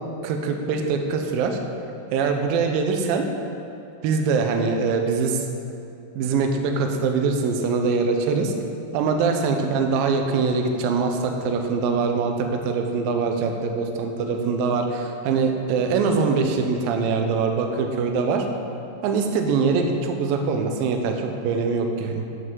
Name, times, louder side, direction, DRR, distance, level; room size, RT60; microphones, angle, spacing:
voice 1, 0.2-1.6 2.1-3.3 4.0-5.4 6.2-8.5 8.9-18.5 19.0-22.2, right 4 dB, 80° right, 4 dB, 2.2 m, -23 dB
9.6 x 5.3 x 6.1 m, 2.7 s
omnidirectional pair, 4.7 m